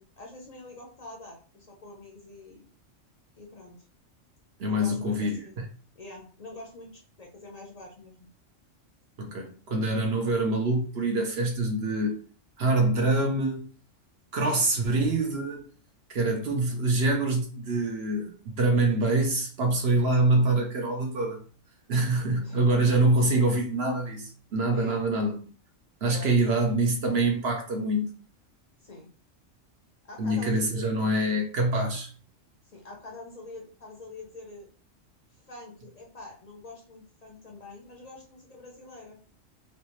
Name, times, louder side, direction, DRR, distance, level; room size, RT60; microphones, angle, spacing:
voice 1, 0.0-2.6 3.4-3.8 4.6-5.6 5.9-8.3 22.4-22.6 24.7-25.0 26.0-26.6 28.8-29.1 30.1-30.9 32.6-34.7 35.3-39.2, left 2 dB, 40° left, 0.6 m, -45 dB
voice 2, 4.6-5.4 9.2-12.2 12.6-13.6 14.3-15.6 16.1-21.4 21.9-25.4 26.0-28.1 30.2-32.1, right 2 dB, 60° right, 0.9 m, -25 dB
3.2 x 2.8 x 3.0 m
omnidirectional pair, 1.3 m